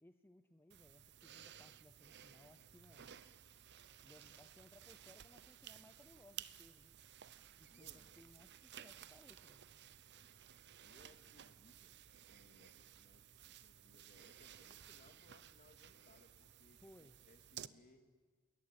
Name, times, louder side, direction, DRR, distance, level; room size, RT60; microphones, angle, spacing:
voice 1, 0.0-3.1 4.0-6.9 7.6-9.7 16.8-17.2, left 1 dB, 10° left, 8 dB, 0.7 m, -64 dB
sound 1, 0.7-17.7, right 10 dB, 55° right, 0.7 m, -57 dB
voice 2, 7.7-8.2 10.8-11.9 12.2-18.1, left 1 dB, 40° left, 6 dB, 2.6 m, -68 dB
28.5 x 21.0 x 9.2 m, 1.5 s
head